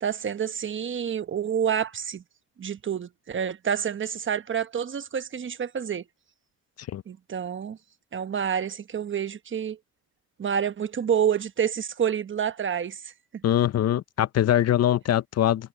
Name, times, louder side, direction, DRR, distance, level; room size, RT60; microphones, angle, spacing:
voice 1, 0.0-2.2 2.6-6.0 7.1-7.8 8.1-9.8 10.4-13.1, right 8 dB, 40° right, 1.1 m, -28 dB
voice 2, 13.4-15.7, left 11 dB, 55° left, 0.8 m, -23 dB
cardioid pair, 90°, 30 cm